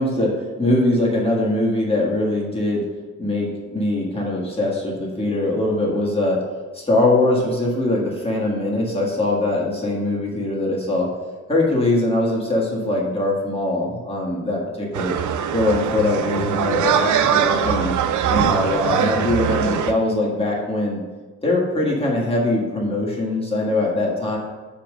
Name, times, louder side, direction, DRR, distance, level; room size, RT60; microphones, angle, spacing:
voice 1, 0.0-2.8 3.2-6.4 6.7-11.1 11.5-15.1 15.5-17.9 18.3-21.0 21.4-24.4, left 2 dB, 20° left, -4 dB, 1.6 m, -22 dB
sound 1, 14.9-19.9, right 8 dB, 85° right, 0.5 m, -21 dB
5.5 x 4.8 x 6.2 m, 1.3 s
wide cardioid pair, 145°, 29 cm